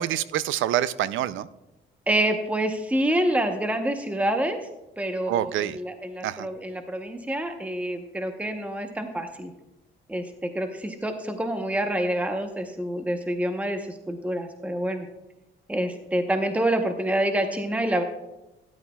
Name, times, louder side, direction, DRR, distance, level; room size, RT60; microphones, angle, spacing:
voice 1, 0.0-1.5 5.3-5.8 6.2-6.5, right 12 dB, 80° right, 17 dB, 0.5 m, -26 dB
voice 2, 2.1-4.6 5.0-9.5 10.1-15.1 15.7-18.0, right 1 dB, 5° right, 6 dB, 0.9 m, -27 dB
12.5 x 10.5 x 2.3 m, 0.98 s
cardioid pair, 90°, 20 cm